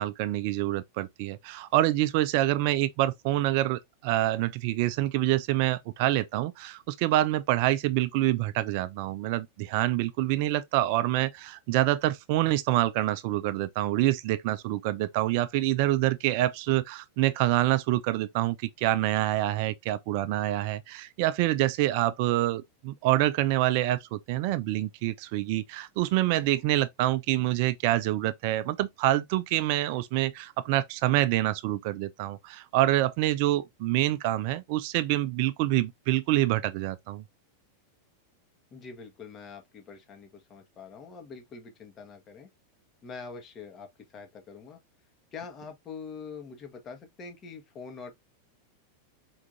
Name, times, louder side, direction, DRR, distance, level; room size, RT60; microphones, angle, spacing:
voice 1, 0.0-37.2, right 15 dB, 45° right, 0.4 m, -26 dB
voice 2, 38.7-42.5 43.0-44.8 45.3-48.1, left 5 dB, 30° left, 1.2 m, -44 dB
4.6 x 3.6 x 2.5 m
figure-of-eight pair, 90°, 0 cm